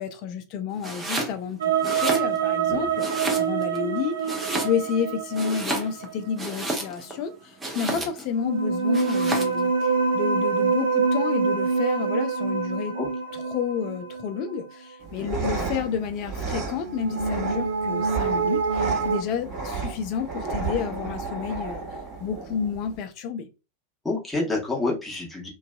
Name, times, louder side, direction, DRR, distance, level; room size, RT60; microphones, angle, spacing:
voice 1, 0.0-13.0 13.5-21.8 22.2-23.5, left 7 dB, 40° left, 0.4 m, -30 dB
Domestic sounds home sounds, 0.8-1.4 1.7-2.6 3.0-3.8 4.2-5.0 5.3-7.1 7.6-8.3 8.9-9.6, right 1 dB, 10° right, 0.7 m, -31 dB
sound 1, 1.6-6.4 8.3-14.7 16.8-19.2, right 5 dB, 70° right, 0.3 m, -26 dB
sound 2, 15.0-23.0, right 4 dB, 35° right, 1.1 m, -33 dB
voice 2, 24.0-25.5, left 2 dB, 5° left, 1.0 m, -28 dB
2.5 x 2.3 x 2.3 m
figure-of-eight pair, 90°, 0 cm